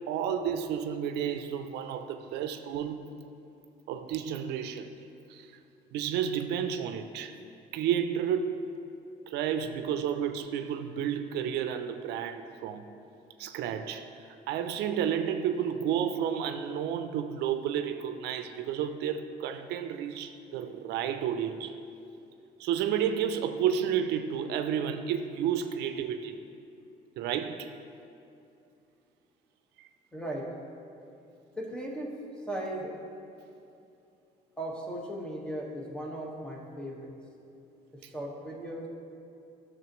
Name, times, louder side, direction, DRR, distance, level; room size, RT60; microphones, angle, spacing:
voice 1, 0.0-3.2 3.9-4.9 5.3-5.5 5.9-7.4 7.7-8.7 9.3-12.9 13.4-21.8 22.6-26.4 27.2-27.8 29.8-29.9 38.0-38.1, right 8 dB, 80° right, 0.5 m, -31 dB
voice 2, 30.1-30.5 31.6-32.2 32.5-32.9 34.6-37.1 37.9-38.9, right 1 dB, 5° left, 1.4 m, -37 dB
12.0 x 6.5 x 3.0 m
cardioid pair, 110°, 17 cm